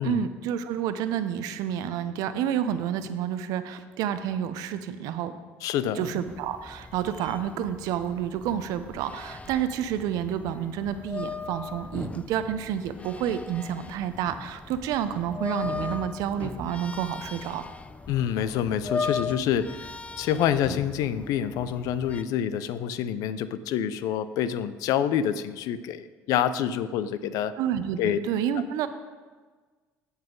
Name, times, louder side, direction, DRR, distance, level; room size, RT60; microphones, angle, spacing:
voice 1, 0.0-5.3 5.9-17.6 27.6-28.9, right 9 dB, 70° right, 11 dB, 0.6 m, -29 dB
voice 2, 5.6-6.1 18.1-19.9 20.2-27.5 28.0-28.2, left 9 dB, 70° left, 14 dB, 0.5 m, -27 dB
sound 1, 6.3-22.2, left 4 dB, 20° left, 0.5 m, -38 dB
15.0 x 5.6 x 3.9 m, 1.4 s
supercardioid pair, 75°, 6 cm